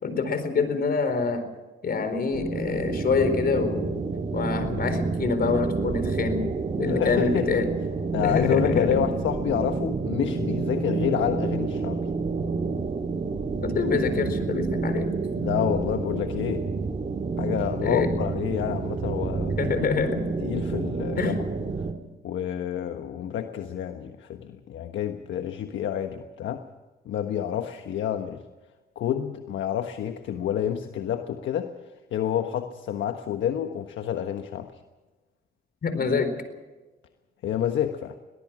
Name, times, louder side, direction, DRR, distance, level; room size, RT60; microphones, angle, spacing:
voice 1, 0.0-1.4 1.8-4.0 4.3-6.5 6.8-7.7 8.2-9.0 13.6-15.1 17.8-18.1 19.6-20.2 21.2-21.4 35.8-36.3, left 4 dB, 50° left, 10 dB, 4.3 m, -26 dB
sound 1, 2.3-21.9, right 4 dB, 35° right, 2.5 m, -29 dB
voice 2, 6.8-7.6 8.1-12.1 15.4-16.7 17.4-19.6 20.4-21.3 22.2-26.6 27.0-28.4 28.9-31.7 32.1-34.8 37.4-38.2, left 9 dB, 70° left, 7 dB, 1.3 m, -28 dB
22.5 x 19.0 x 6.2 m, 1.2 s
cardioid pair, 90°, 20 cm